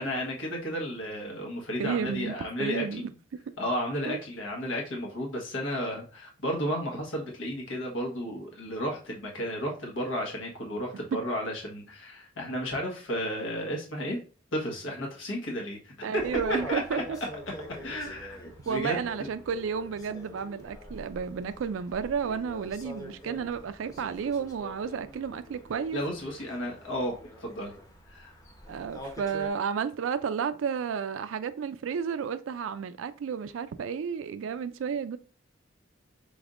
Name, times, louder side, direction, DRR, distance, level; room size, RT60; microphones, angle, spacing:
voice 1, 0.0-3.1 3.6-14.2 14.5-16.2 16.7-17.0 17.8-19.3 25.9-27.1 27.4-27.8 28.1-28.3, equal, 90° left, 1.3 m, -33 dB
voice 2, 1.8-2.3 2.6-3.1 4.1-4.2 11.1-11.2 16.0-17.0 18.7-26.0 28.7-35.2, right 6 dB, 90° right, 0.4 m, -32 dB
sound 1, 16.2-29.5, equal, 20° left, 0.8 m, -44 dB
5.2 x 3.5 x 2.5 m
head